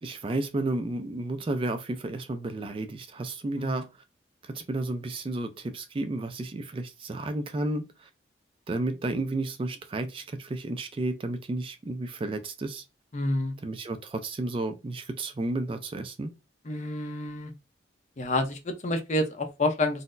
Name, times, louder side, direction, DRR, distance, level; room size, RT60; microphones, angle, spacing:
voice 1, 0.0-3.9 4.4-8.1 8.7-12.8 13.6-16.3, right 2 dB, 30° right, 0.3 m, -32 dB
voice 2, 13.1-13.5 16.7-17.5 18.2-20.0, left 2 dB, 40° left, 0.6 m, -28 dB
3.9 x 2.0 x 2.5 m
head